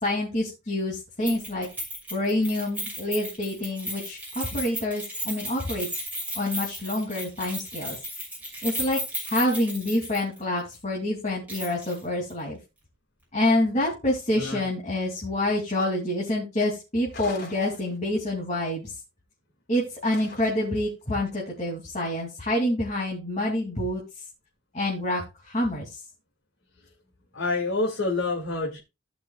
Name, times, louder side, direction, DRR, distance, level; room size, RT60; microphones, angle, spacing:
voice 1, 0.0-1.7 2.1-5.9 6.3-8.0 8.6-9.0 9.3-12.6 13.3-18.9 19.7-24.0 24.7-25.9, left 1 dB, 35° left, -3 dB, 2.8 m, -27 dB
Keys jangling, 1.2-10.4 10.7-10.8 11.5-12.0 12.3-12.4, equal, 10° right, 6.3 m, -35 dB
sound 1, 17.1-18.3 20.0-20.8, left 2 dB, 55° left, 3.8 m, -44 dB
voice 2, 27.3-28.8, left 3 dB, 70° left, -2 dB, 2.4 m, -27 dB
17.5 x 6.2 x 2.4 m, 0.27 s
head